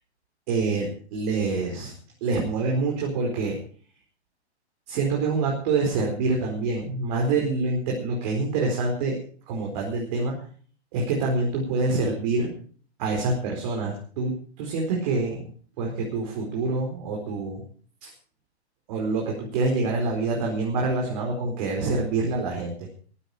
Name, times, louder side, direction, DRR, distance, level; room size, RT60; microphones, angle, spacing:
voice 1, 0.5-1.9 2.2-3.6 4.9-9.2 9.5-10.4 10.9-12.5 13.0-15.4 15.8-17.6 18.0-18.1 18.9-22.9, right 3 dB, 35° right, 0 dB, 4.5 m, -26 dB
15.0 x 14.5 x 4.9 m, 0.44 s
hypercardioid pair, 155°, 34 cm